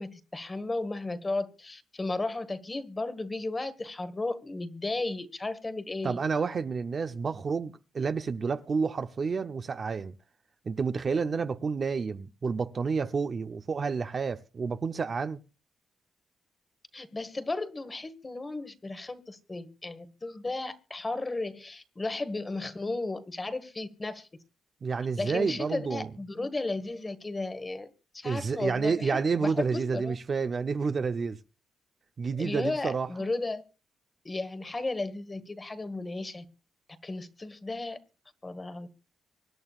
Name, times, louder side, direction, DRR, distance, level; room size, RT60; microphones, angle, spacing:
voice 1, 0.0-6.2 16.9-24.3 25.2-30.1 32.4-33.6 34.2-36.4 37.0-38.0 38.4-38.9, left 2 dB, 20° left, 1.3 m, -34 dB
voice 2, 6.0-10.1 10.7-15.4 24.8-26.1 28.2-31.4 32.2-33.1, right 5 dB, 35° right, 0.6 m, -29 dB
24.5 x 11.0 x 2.4 m
cardioid pair, 140°, 0 cm